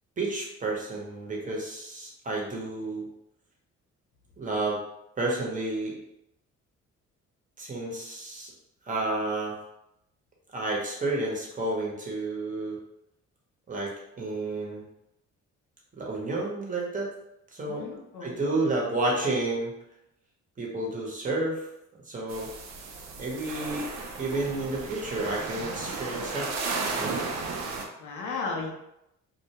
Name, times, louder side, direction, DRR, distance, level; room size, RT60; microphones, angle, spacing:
voice 1, 0.2-3.1 4.4-4.8 5.2-6.0 7.6-8.5 8.9-9.6 10.5-12.8 13.7-13.9 14.2-14.8 16.0-17.1 17.5-19.7 20.6-21.6 22.1-22.5 23.2-23.8 24.2-26.5 27.0-27.2, right 2 dB, 25° right, -2 dB, 0.9 m, -30 dB
voice 2, 17.6-18.6 28.0-28.7, left 4 dB, 85° left, 0 dB, 0.7 m, -35 dB
sound 1, 22.3-27.9, right 4 dB, 60° right, 0.5 m, -34 dB
2.4 x 2.2 x 2.8 m, 0.83 s
cardioid pair, 90°, 30 cm